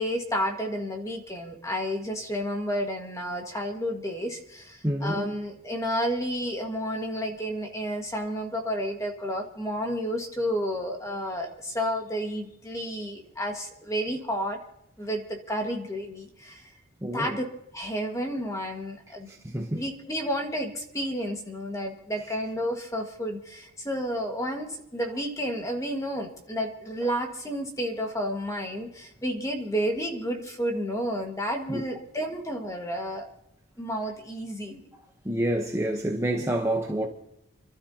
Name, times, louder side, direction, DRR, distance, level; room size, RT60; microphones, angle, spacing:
voice 1, 0.0-14.6 15.0-16.7 17.1-17.4 17.7-19.3 19.7-33.3 33.8-34.9, equal, 15° left, 1.7 m, -31 dB
voice 2, 4.8-5.3 17.0-17.4 19.3-19.8 31.7-31.8 35.2-37.1, right 1 dB, 15° right, 0.9 m, -28 dB
30.0 x 12.5 x 2.8 m
head